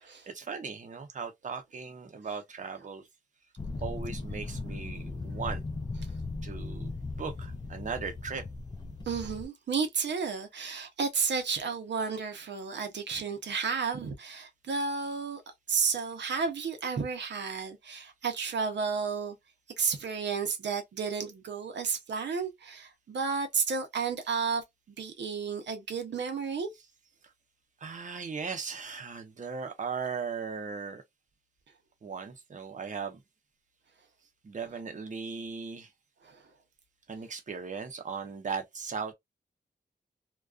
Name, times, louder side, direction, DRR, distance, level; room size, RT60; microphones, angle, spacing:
voice 1, 0.0-3.0 3.8-5.6 6.4-8.4 27.8-31.0 32.0-33.2 34.4-35.9 37.1-39.1, right 5 dB, 45° right, 0.6 m, -38 dB
sound 1, 3.6-9.5, left 3 dB, 25° left, 0.3 m, -38 dB
voice 2, 9.1-15.4 15.7-19.4 19.8-24.6 25.0-26.7 36.2-36.4, right 5 dB, 85° right, 0.6 m, -32 dB
2.3 x 2.2 x 2.3 m
wide cardioid pair, 110°, 18 cm